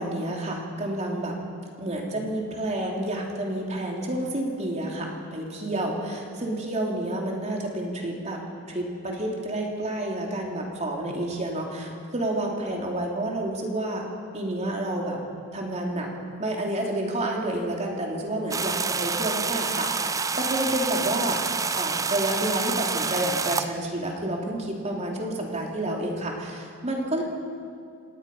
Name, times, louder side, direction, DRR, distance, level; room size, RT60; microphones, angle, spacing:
voice 1, 0.0-1.4 1.8-8.4 8.7-14.1 14.3-15.2 15.5-16.1 16.4-21.4 21.7-27.2, right 1 dB, 35° right, 0 dB, 3.2 m, -29 dB
sound 1, 18.5-23.7, right 4 dB, 15° right, 0.5 m, -28 dB
27.0 x 18.0 x 5.6 m, 2.4 s
head